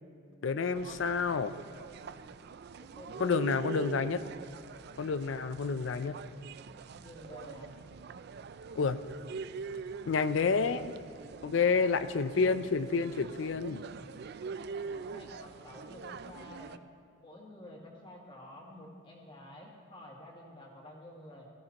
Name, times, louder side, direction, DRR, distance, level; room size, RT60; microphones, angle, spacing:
voice 1, 0.4-1.5 3.2-4.2 5.0-6.2 8.8-9.0 10.1-10.9 11.4-13.8, left 5 dB, 70° left, 12 dB, 0.5 m, -29 dB
sound 1, 0.7-16.8, right 5 dB, 55° right, 0.4 m, -44 dB
voice 2, 2.8-3.6 7.0-7.7 11.4-11.9 13.9-14.1 14.8-16.7 17.2-21.5, left 1 dB, 25° left, -2 dB, 2.0 m, -50 dB
17.5 x 15.0 x 2.9 m, 2.4 s
head